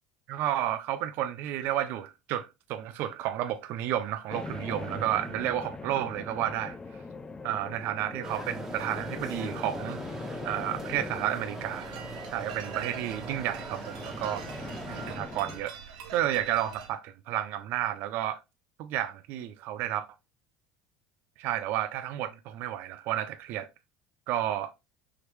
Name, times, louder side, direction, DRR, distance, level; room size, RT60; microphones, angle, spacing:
voice 1, 0.3-6.8 7.4-10.0 10.4-11.9 12.3-14.4 14.9-15.7 16.1-18.4 18.8-20.1 21.4-23.7 24.3-24.7, right 12 dB, 60° right, 0.5 m, -31 dB
sound 1, 4.3-15.6, left 3 dB, 20° left, 0.4 m, -41 dB
sound 2, 8.2-15.2, right 2 dB, 10° right, 1.5 m, -41 dB
sound 3, 11.7-16.9, right 7 dB, 85° right, 1.0 m, -44 dB
4.8 x 3.1 x 3.1 m
supercardioid pair, 110°, 4 cm